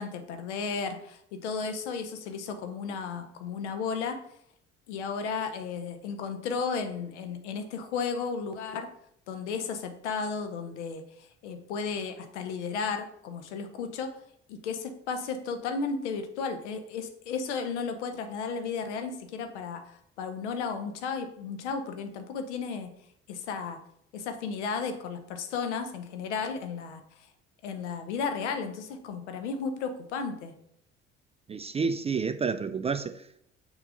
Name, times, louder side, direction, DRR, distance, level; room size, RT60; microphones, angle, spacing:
voice 1, 0.0-4.2 4.9-8.9 9.3-14.2 14.5-22.9 23.3-23.8 24.1-27.0 27.6-30.5, left 5 dB, 80° left, 0.8 m, -34 dB
voice 2, 31.5-33.5, right 5 dB, 20° right, 0.3 m, -30 dB
6.6 x 2.9 x 5.3 m
figure-of-eight pair, 50°, 34 cm